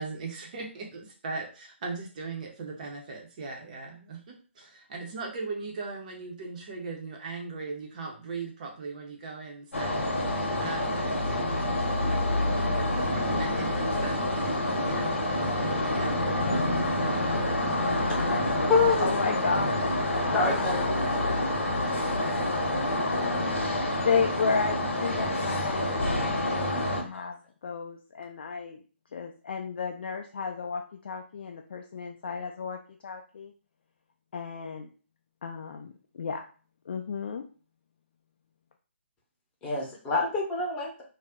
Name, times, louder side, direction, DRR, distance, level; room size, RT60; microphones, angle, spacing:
voice 1, 0.0-16.1, right 4 dB, 35° right, 1 dB, 0.6 m, -39 dB
sound 1, 9.7-27.0, left 1 dB, 75° left, 0.9 m, -27 dB
voice 2, 18.0-21.4 22.4-22.6 23.2-28.8 29.1-33.5 34.3-34.9 35.4-36.4 36.9-37.4, left 5 dB, 50° left, 3 dB, 0.3 m, -33 dB
voice 3, 18.7-19.1 20.3-20.8 27.1-27.3 39.6-41.0, left 4 dB, 15° left, -2 dB, 0.8 m, -26 dB
2.4 x 2.0 x 3.5 m, 0.38 s
figure-of-eight pair, 140°, 7 cm